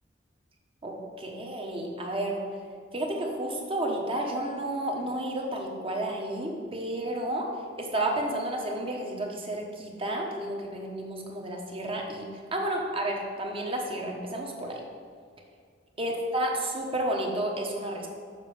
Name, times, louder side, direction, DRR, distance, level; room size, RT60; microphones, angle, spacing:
voice 1, 0.8-2.4 2.9-7.5 7.8-14.8 16.0-18.1, right 1 dB, 30° right, 0 dB, 1.2 m, -31 dB
7.2 x 6.1 x 5.4 m, 2.1 s
head